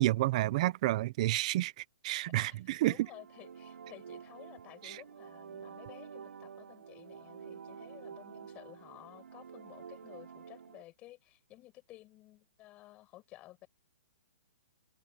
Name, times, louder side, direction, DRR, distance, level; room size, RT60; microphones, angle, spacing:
voice 1, 0.0-2.9 4.8-5.0, right 17 dB, 30° right, 0.6 m, -30 dB
voice 2, 2.4-13.7, left 16 dB, 20° left, 6.7 m, -54 dB
sound 1, 2.9-10.8, right 7 dB, 85° right, 4.7 m, -49 dB
open air
hypercardioid pair, 170°, 7 cm